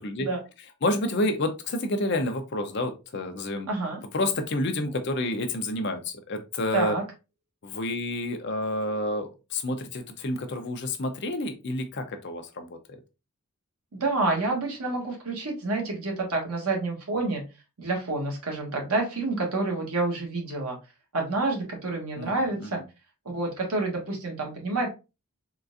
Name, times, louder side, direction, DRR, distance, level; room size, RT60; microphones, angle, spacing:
voice 1, 0.8-3.7 4.1-7.0 7.6-13.0 22.2-22.8, left 1 dB, 50° left, 6 dB, 0.6 m, -29 dB
voice 2, 3.7-4.0 6.7-7.0 13.9-17.4 17.8-20.8 21.1-22.8 23.3-24.9, right 3 dB, 90° right, 0 dB, 1.3 m, -28 dB
3.7 x 2.4 x 2.5 m, 0.28 s
head